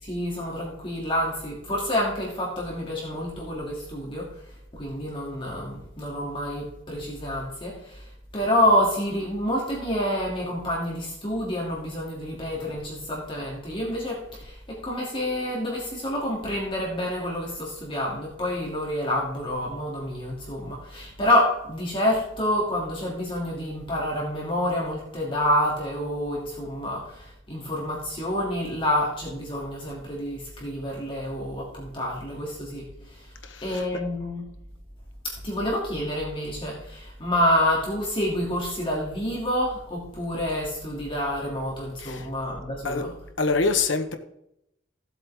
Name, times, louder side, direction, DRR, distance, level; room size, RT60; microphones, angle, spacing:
voice 1, 0.0-4.3 4.7-33.3 33.6-34.4 35.2-43.1, left 1 dB, 30° left, -3 dB, 2.8 m, -28 dB
voice 2, 33.4-33.8 42.0-42.3 42.8-43.0 43.4-44.2, left 4 dB, 85° left, 7 dB, 1.3 m, -25 dB
16.5 x 7.9 x 3.6 m, 0.81 s
head